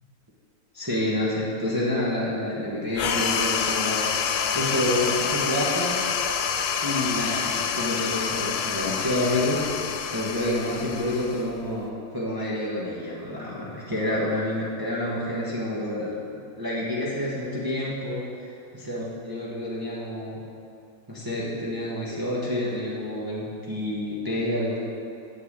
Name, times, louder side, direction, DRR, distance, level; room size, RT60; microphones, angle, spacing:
voice 1, 0.7-6.0 6.8-9.7 10.1-20.4 21.1-24.8, left 1 dB, 15° right, -6 dB, 1.2 m, -28 dB
sound 1, 2.9-11.8, left 7 dB, 65° left, 0.6 m, -27 dB
7.9 x 6.8 x 8.1 m, 2.6 s
omnidirectional pair, 1.6 m